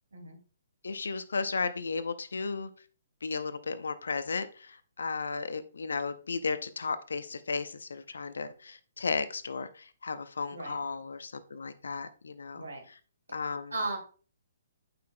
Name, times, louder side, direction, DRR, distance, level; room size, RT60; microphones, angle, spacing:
voice 1, 0.8-2.7 3.2-12.7 13.3-13.7, left 4 dB, 70° left, 13 dB, 0.6 m, -34 dB
voice 2, 12.5-12.9 13.7-14.0, right 3 dB, 75° right, 3 dB, 2.2 m, -35 dB
8.4 x 5.8 x 2.2 m, 0.39 s
figure-of-eight pair, 130°, 0 cm